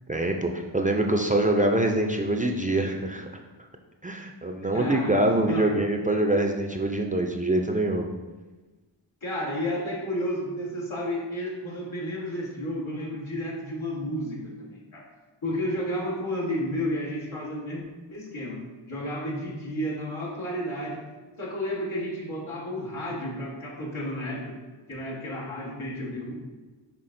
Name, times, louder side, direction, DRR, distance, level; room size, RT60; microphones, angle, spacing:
voice 1, 0.1-3.3 4.0-8.1, right 1 dB, 20° right, 2 dB, 0.4 m, -24 dB
voice 2, 4.7-5.2 5.4-5.7 9.2-15.0 15.4-18.6 18.9-21.0 21.4-24.6 24.9-26.3, equal, 80° left, -5 dB, 1.5 m, -32 dB
5.8 x 3.4 x 2.6 m, 1.2 s
cardioid pair, 40°, 48 cm